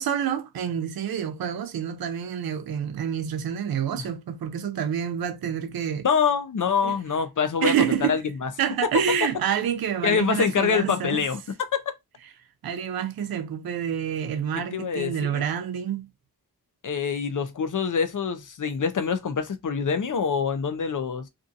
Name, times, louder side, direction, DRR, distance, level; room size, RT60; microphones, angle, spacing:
voice 1, 0.0-6.1 6.8-7.0 7.6-8.2 8.6-11.2 12.6-16.1, right 8 dB, 70° right, 0.6 m, -28 dB
voice 2, 6.0-7.7 8.0-8.5 10.0-11.4 14.7-15.4 16.8-21.3, left 6 dB, 55° left, 0.6 m, -25 dB
2.6 x 2.6 x 2.4 m
cardioid pair, 60°, 38 cm